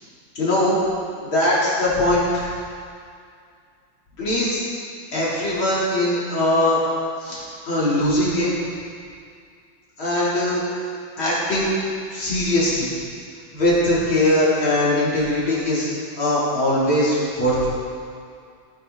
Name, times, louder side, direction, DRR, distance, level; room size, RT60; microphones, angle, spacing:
voice 1, 0.4-0.8 1.3-2.5 4.2-4.6 5.1-6.8 7.2-7.4 7.7-8.6 10.0-10.6 11.2-11.7 12.1-12.9 13.5-15.9 16.2-17.7, left 1 dB, 80° left, -8 dB, 4.5 m, -20 dB
17.5 x 10.0 x 4.1 m, 2.3 s
omnidirectional pair, 2.2 m